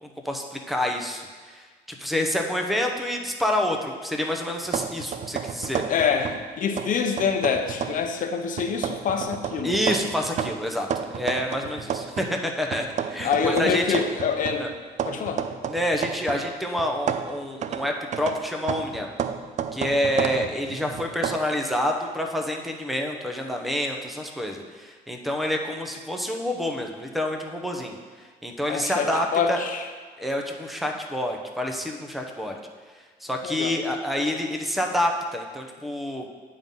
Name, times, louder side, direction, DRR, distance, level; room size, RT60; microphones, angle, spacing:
voice 1, 0.0-5.8 9.6-10.9 11.1-14.0 14.6-14.7 15.7-19.1 19.7-28.0 28.4-29.6 30.2-32.6 33.2-36.3, left 1 dB, ahead, 2 dB, 0.8 m, -28 dB
sound 1, 4.7-6.5 6.8-8.1 8.6-12.4 12.7-16.5 16.8-21.4, right 8 dB, 45° right, 0.4 m, -31 dB
voice 2, 5.9-9.8 13.2-14.7 15.0-15.4 28.7-29.9 33.4-33.8, left 6 dB, 50° left, 5 dB, 0.9 m, -26 dB
8.9 x 3.9 x 5.5 m, 1.5 s
cardioid pair, 110°, 17 cm